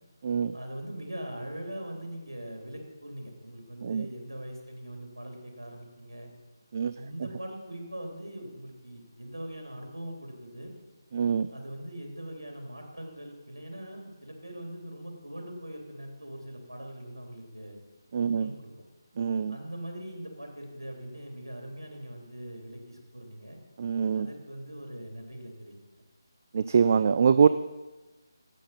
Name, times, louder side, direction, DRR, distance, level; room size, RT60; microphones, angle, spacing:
voice 1, 0.5-6.3 6.9-10.7 11.5-17.8 18.2-18.7 19.5-23.6 24.1-25.7, right 1 dB, 85° right, 2 dB, 3.0 m, -41 dB
voice 2, 11.1-11.5 18.1-18.5 19.2-19.6 23.8-24.3 26.5-27.5, right 6 dB, 40° right, 12 dB, 0.3 m, -24 dB
11.5 x 8.5 x 5.6 m, 1.2 s
figure-of-eight pair, 155°, 2 cm